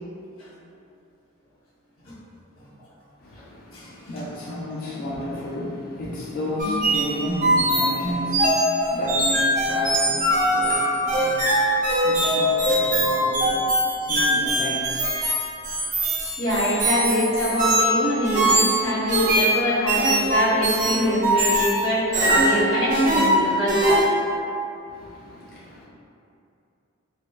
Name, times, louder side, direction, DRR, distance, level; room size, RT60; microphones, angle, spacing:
voice 1, 3.2-15.1 24.9-25.8, left 1 dB, 45° left, -6 dB, 0.4 m, -32 dB
sound 1, 6.6-24.1, right 1 dB, 40° right, 0.5 m, -22 dB
voice 2, 16.4-24.0, equal, 85° left, -12 dB, 0.9 m, -24 dB
4.1 x 2.2 x 2.2 m, 2.6 s
head